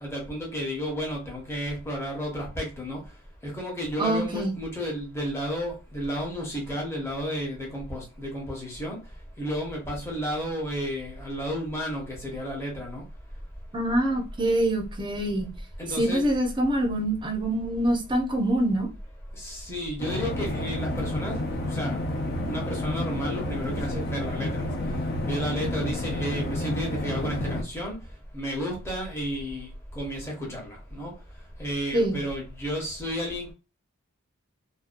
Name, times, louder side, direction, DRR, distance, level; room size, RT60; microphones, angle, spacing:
voice 1, 0.0-3.0 3.4-9.0 9.4-13.0 15.8-16.3 19.4-21.4 21.7-22.0 22.4-24.8 25.2-28.0 28.3-31.1 31.6-33.5, equal, 10° left, -3 dB, 0.8 m, -32 dB
voice 2, 4.0-4.5 13.7-15.5 16.0-18.9 31.9-32.2, right 1 dB, 20° right, 1 dB, 0.6 m, -25 dB
sound 1, 20.0-27.6, left 1 dB, 45° left, 0.4 m, -30 dB
2.6 x 2.2 x 2.5 m, 0.31 s
head